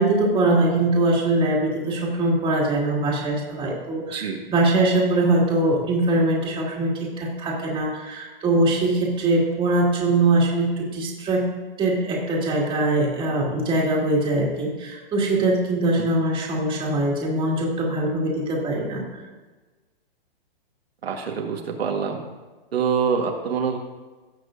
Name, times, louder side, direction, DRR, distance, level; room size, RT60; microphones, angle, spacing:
voice 1, 0.0-11.4 11.8-19.0, right 2 dB, 15° right, -3 dB, 2.1 m, -22 dB
voice 2, 4.1-4.4 16.0-16.1 21.0-22.2 22.7-23.8, right 6 dB, 85° right, 2 dB, 1.5 m, -25 dB
16.5 x 6.2 x 2.6 m, 1.2 s
hypercardioid pair, 140°, 30 cm